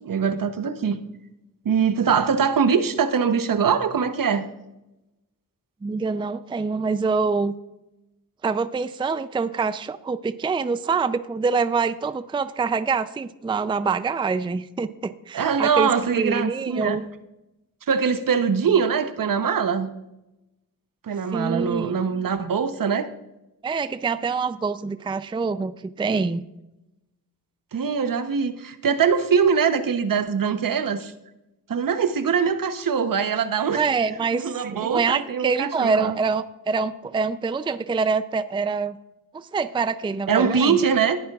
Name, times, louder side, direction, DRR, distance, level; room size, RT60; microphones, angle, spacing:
voice 1, 0.0-1.0 1.6-4.5 15.3-17.0 17.9-19.9 21.0-23.1 27.7-31.1 31.7-33.8 34.3-36.2 40.3-41.2, right 6 dB, 65° right, 10 dB, 0.9 m, -22 dB
voice 2, 5.8-7.6 8.4-15.9 16.2-17.0 21.3-21.9 23.6-26.4 33.7-39.0 39.3-40.8, right 4 dB, 15° right, 13 dB, 0.4 m, -25 dB
19.0 x 8.6 x 2.4 m, 0.93 s
cardioid pair, 65°, 36 cm